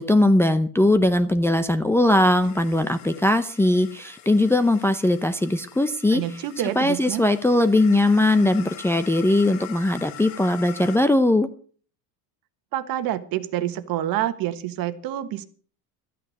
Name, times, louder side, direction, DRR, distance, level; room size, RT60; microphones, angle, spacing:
voice 1, 0.0-6.2 6.8-11.5, left 1 dB, 5° left, 7 dB, 0.6 m, -20 dB
sound 1, 2.4-11.0, left 12 dB, 70° left, 2.2 m, -44 dB
voice 2, 6.1-7.2 12.7-15.4, right 12 dB, 50° right, 11 dB, 1.4 m, -27 dB
13.5 x 9.3 x 6.4 m, 0.44 s
cardioid pair, 135°, 43 cm